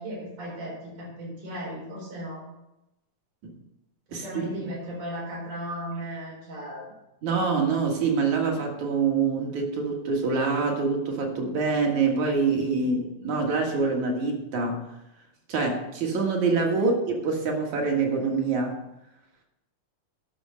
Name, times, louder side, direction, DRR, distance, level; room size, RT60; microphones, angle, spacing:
voice 1, 0.0-2.4 4.1-6.9 12.7-13.0 16.7-16.9, equal, 90° right, -3 dB, 5.8 m, -36 dB
voice 2, 4.1-4.7 7.2-14.8 15.5-18.8, right 4 dB, 70° right, 1 dB, 3.1 m, -25 dB
11.5 x 6.5 x 6.4 m, 0.91 s
omnidirectional pair, 3.5 m